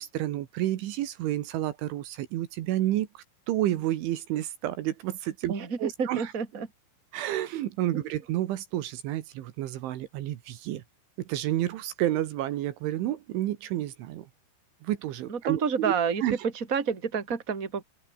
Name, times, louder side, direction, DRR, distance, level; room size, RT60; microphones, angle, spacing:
voice 1, 0.0-6.3 7.1-10.8 11.2-14.3 14.8-15.9 16.2-16.4, right 13 dB, 75° right, 3.7 m, -30 dB
voice 2, 5.5-6.7 7.9-8.0 15.3-16.2 16.5-17.8, right 6 dB, 20° right, 2.8 m, -29 dB
open air
omnidirectional pair, 5.8 m